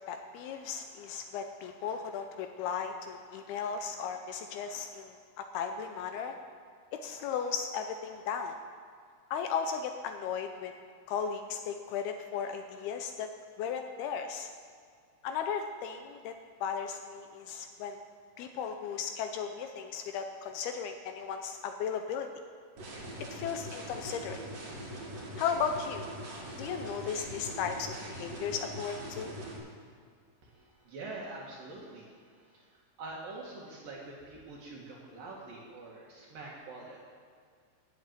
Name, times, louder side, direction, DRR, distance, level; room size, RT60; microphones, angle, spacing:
voice 1, 0.1-6.4 6.9-8.6 9.3-10.7 11.1-13.3 13.6-14.5 15.2-16.3 16.6-18.0 18.4-22.3 23.3-24.4 25.4-26.1 26.6-29.3, left 7 dB, 80° left, 6 dB, 2.4 m, -36 dB
sound 1, 22.8-29.6, equal, 45° right, 2.7 m, -42 dB
voice 2, 30.4-32.7 33.0-37.1, right 2 dB, 60° right, -4 dB, 3.1 m, -45 dB
10.5 x 8.0 x 9.1 m, 2.1 s
omnidirectional pair, 4.9 m